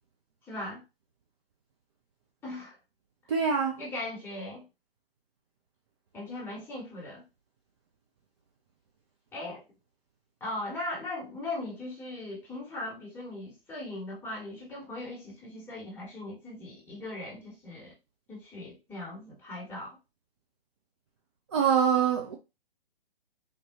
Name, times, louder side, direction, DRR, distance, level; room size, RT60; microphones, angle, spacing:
voice 1, 0.4-0.8 2.4-2.8 3.8-4.6 6.1-7.2 9.3-9.6 10.4-17.9 18.3-20.0, left 2 dB, 5° left, 1.3 m, -39 dB
voice 2, 3.3-3.8 21.5-22.4, right 7 dB, 30° right, 0.4 m, -24 dB
3.6 x 2.6 x 2.8 m
figure-of-eight pair, 130°, 30 cm